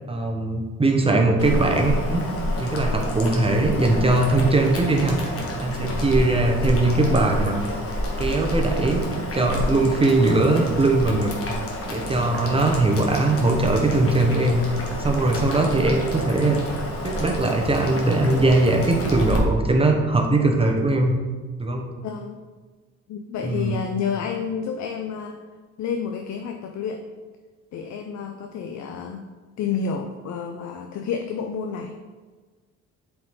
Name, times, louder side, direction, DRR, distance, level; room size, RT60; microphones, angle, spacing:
voice 1, 0.1-2.2 2.6-5.2 5.6-7.6 8.2-9.1 9.3-11.3 11.9-14.6 15.0-16.6 17.0-21.1 21.6-21.8 23.4-23.7, right 2 dB, 20° right, 2 dB, 1.2 m, -20 dB
Boiling, 1.4-19.4, left 1 dB, 50° left, 1.5 m, -29 dB
voice 2, 5.8-6.2 12.3-12.6 22.0-22.4 23.1-25.4 25.8-27.0 27.7-29.3 29.6-31.9, left 6 dB, 65° left, 4 dB, 0.6 m, -30 dB
7.4 x 4.7 x 3.8 m, 1.4 s
cardioid pair, 90°, 30 cm